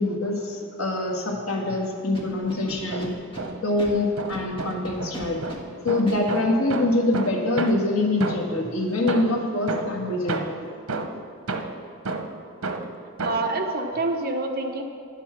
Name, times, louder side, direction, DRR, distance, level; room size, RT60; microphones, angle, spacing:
voice 1, 0.0-3.1 3.6-5.4 5.8-10.7, left 2 dB, 75° left, 1 dB, 1.7 m, -24 dB
Scratching (performance technique), 2.1-3.4 3.8-3.9 4.3-5.6 6.1-6.2, equal, 25° left, 1.7 m, -38 dB
sound 1, 2.7-3.8 4.2-8.7 9.1-13.6, right 3 dB, 90° right, 0.9 m, -32 dB
voice 2, 13.2-14.8, right 2 dB, 45° right, 3 dB, 1.0 m, -26 dB
11.0 x 8.2 x 5.9 m, 2.3 s
head